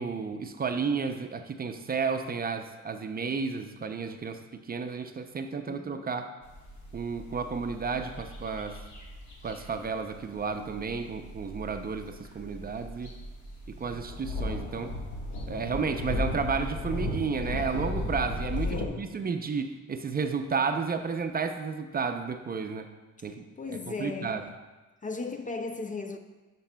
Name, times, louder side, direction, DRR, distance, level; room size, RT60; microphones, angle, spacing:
voice 1, 0.0-4.4 4.7-6.3 6.9-8.8 9.4-13.1 13.7-14.9 15.5-22.9 23.2-24.4, right 5 dB, 30° right, 0.5 m, -32 dB
voice 2, 5.7-6.1 18.6-19.2 23.2-24.6 25.0-26.2, left 4 dB, 25° left, 0.4 m, -37 dB
sound 1, 6.4-18.9, left 1 dB, 75° left, 1.5 m, -36 dB
11.5 x 6.0 x 2.2 m
cardioid pair, 90°, 30 cm